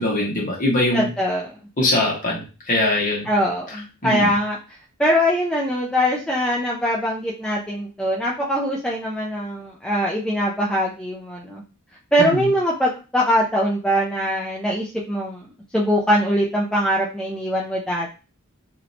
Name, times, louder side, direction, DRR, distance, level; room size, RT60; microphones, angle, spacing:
voice 1, 0.0-1.1 1.8-3.3 4.0-4.3 12.2-12.5, left 1 dB, 35° left, -3 dB, 1.2 m, -22 dB
voice 2, 0.9-1.6 3.2-4.6 5.0-11.6 12.1-15.5 15.7-18.1, equal, 5° left, -4 dB, 0.4 m, -22 dB
3.1 x 2.7 x 2.6 m, 0.33 s
head